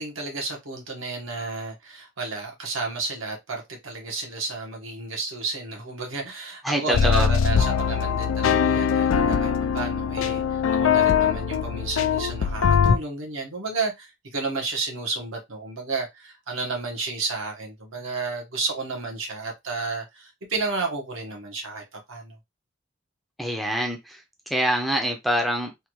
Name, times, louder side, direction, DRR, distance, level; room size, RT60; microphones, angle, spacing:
voice 1, 0.0-22.3, right 3 dB, 85° right, 1.3 m, -32 dB
voice 2, 6.6-7.3 23.4-24.2 24.5-25.9, equal, ahead, 0.5 m, -25 dB
sound 1, 6.9-13.0, left 7 dB, 85° left, 0.4 m, -22 dB
3.5 x 2.3 x 3.0 m
head